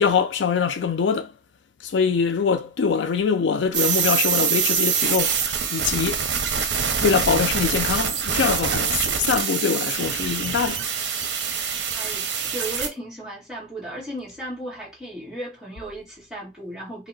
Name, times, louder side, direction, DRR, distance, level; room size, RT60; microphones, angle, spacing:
voice 1, 0.0-1.3 1.8-5.4 5.7-6.2 7.0-10.8, left 6 dB, 85° left, 0.4 m, -23 dB
sound 1, 3.7-12.9, right 7 dB, 80° right, 0.6 m, -24 dB
voice 2, 11.9-12.3 12.5-17.1, right 1 dB, 5° right, 1.3 m, -35 dB
2.8 x 2.1 x 3.8 m
head